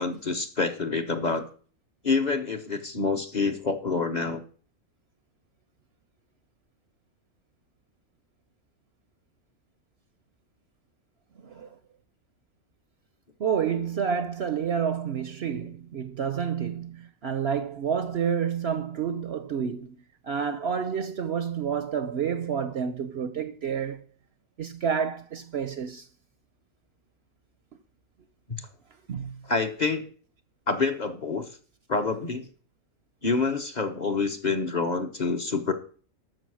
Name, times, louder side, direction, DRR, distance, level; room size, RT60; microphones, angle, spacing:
voice 1, 0.0-1.4 2.0-4.4 29.5-30.1 30.7-31.4 31.9-32.5 33.2-35.7, left 4 dB, 35° left, 1.1 m, -27 dB
voice 2, 13.4-20.0 20.2-24.0 24.6-26.1 29.1-29.4, right 7 dB, 55° right, 0.8 m, -29 dB
12.5 x 6.6 x 6.4 m
omnidirectional pair, 1.4 m